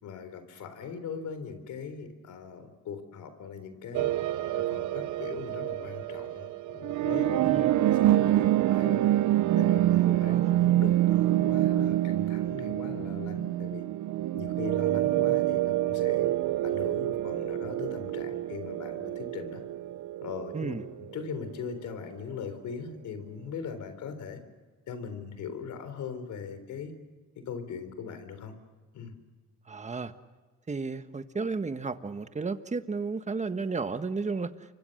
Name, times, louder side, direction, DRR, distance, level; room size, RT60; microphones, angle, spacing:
voice 1, 0.0-4.1 4.5-9.1 9.6-13.8 14.3-16.3 16.6-19.6 20.2-20.7 21.1-24.4 24.9-26.9 27.4-28.5 28.9-29.2, left 6 dB, 75° left, 10 dB, 3.7 m, -40 dB
sound 1, 3.9-21.6, right 14 dB, 70° right, 0.7 m, -27 dB
voice 2, 7.4-7.7 10.0-10.5 20.5-20.8 29.7-30.1 30.7-34.5, right 4 dB, 25° right, 10 dB, 1.4 m, -33 dB
29.0 x 24.0 x 6.6 m, 1.4 s
cardioid pair, 90°, 30 cm